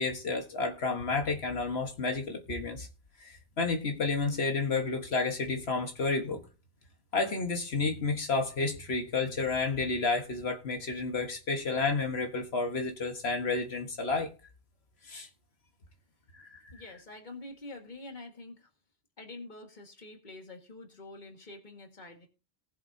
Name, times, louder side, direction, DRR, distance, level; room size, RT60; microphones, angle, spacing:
voice 1, 0.0-2.9 3.2-6.4 7.1-14.3 15.0-15.3 16.3-16.6, left 3 dB, 80° left, 1.6 m, -31 dB
voice 2, 16.7-18.7 19.2-22.3, left 2 dB, 50° left, 2.0 m, -46 dB
19.5 x 7.5 x 2.7 m
omnidirectional pair, 1.1 m